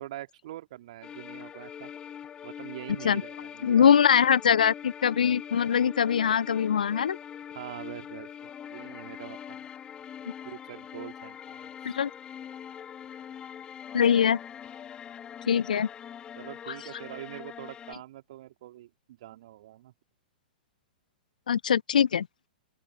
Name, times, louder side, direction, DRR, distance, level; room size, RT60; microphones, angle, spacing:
voice 1, 0.0-1.9 2.4-4.0 7.5-9.7 10.4-11.7 16.3-19.9, right 14 dB, 50° right, 3.3 m, -44 dB
sound 1, 1.0-17.9, left 8 dB, 20° left, 1.8 m, -43 dB
voice 2, 3.6-7.2 11.9-12.1 13.9-14.4 15.5-15.9 21.5-22.3, left 8 dB, 65° left, 0.5 m, -22 dB
open air
figure-of-eight pair, 105°, 5 cm